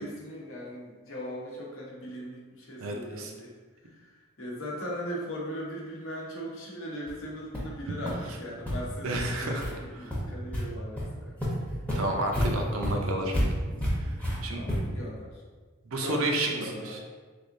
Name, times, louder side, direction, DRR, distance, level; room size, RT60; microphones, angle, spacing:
voice 1, 0.0-3.5 3.9-11.4 12.5-12.7 14.5-15.4 16.0-17.0, equal, 65° left, -3 dB, 0.9 m, -39 dB
voice 2, 2.8-3.3 9.0-9.6 11.9-13.3 14.0-14.1 14.4-14.6 15.9-17.0, right 1 dB, 70° right, 2 dB, 0.6 m, -30 dB
sound 1, 7.1-7.2 7.5-7.7 8.1-8.2 8.6-8.7 9.2-9.3 9.6-9.8 10.1-10.6 11.0-11.1 11.4-15.0, equal, 5° left, 0.8 m, -30 dB
3.5 x 3.4 x 2.6 m, 1.4 s
head